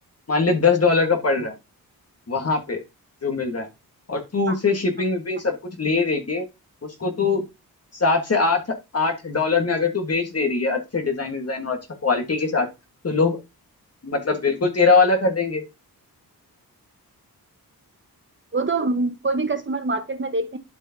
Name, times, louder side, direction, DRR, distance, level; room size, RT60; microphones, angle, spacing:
voice 1, 0.3-1.5 2.3-2.8 3.2-3.7 4.1-6.4 6.8-7.4 7.9-8.6 8.9-12.7 13.0-13.4 14.0-15.7, left 4 dB, 40° left, 1.6 m, -22 dB
voice 2, 18.5-20.6, right 3 dB, 30° right, 1.4 m, -24 dB
11.5 x 4.6 x 2.8 m
wide cardioid pair, 95°, 37 cm